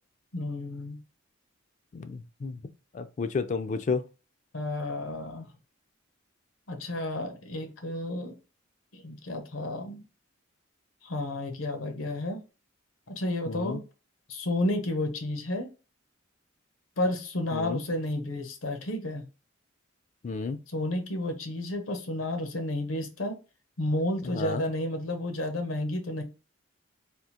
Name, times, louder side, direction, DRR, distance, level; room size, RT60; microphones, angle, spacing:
voice 1, 0.3-1.0 4.5-5.5 6.7-8.4 8.9-10.0 11.0-12.4 13.1-13.8 14.3-15.7 17.0-19.3 20.7-23.3 23.8-26.2, left 1 dB, 85° left, 0.8 m, -31 dB
voice 2, 1.9-2.6 2.9-4.0 13.5-13.8 17.5-17.8 20.2-20.6 24.3-24.6, left 4 dB, 35° left, 0.3 m, -31 dB
3.6 x 2.4 x 2.8 m
head